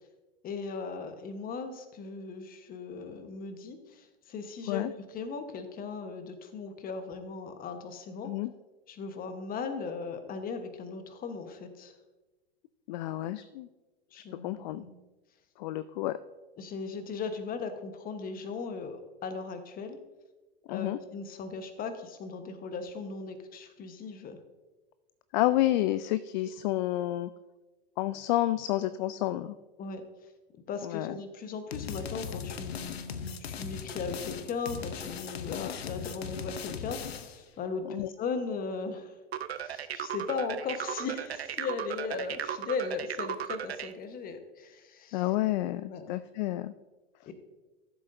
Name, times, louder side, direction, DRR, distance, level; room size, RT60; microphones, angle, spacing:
voice 1, 0.4-8.3 8.9-12.0 14.1-15.0 16.6-20.0 20.6-24.4 29.8-30.1 30.7-39.2 39.5-45.3 45.8-46.2 47.3-47.4, left 4 dB, 30° left, 8 dB, 1.1 m, -38 dB
voice 2, 12.9-13.7 14.3-14.8 15.6-16.2 20.7-21.0 25.3-27.3 28.0-29.6 30.8-31.2 35.5-35.7 37.9-38.1 45.1-46.7, left 15 dB, 50° left, 14 dB, 0.4 m, -30 dB
sound 1, 31.7-37.4, left 7 dB, 80° left, 0.8 m, -39 dB
sound 2, 39.3-43.9, right 9 dB, 85° right, 0.5 m, -36 dB
14.0 x 7.5 x 2.6 m, 1.2 s
hypercardioid pair, 95°, 31 cm